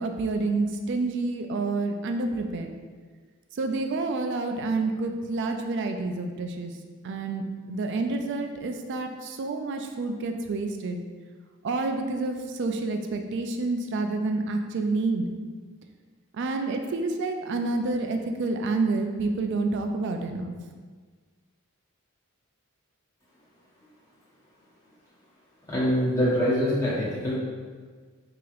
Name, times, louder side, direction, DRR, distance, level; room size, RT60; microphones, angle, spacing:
voice 1, 0.0-2.7 3.5-6.7 7.0-11.0 11.6-15.3 16.3-20.5, right 3 dB, 50° right, 5 dB, 0.3 m, -28 dB
voice 2, 25.7-27.4, equal, 15° left, -9 dB, 1.1 m, -24 dB
4.7 x 2.9 x 2.4 m, 1.5 s
head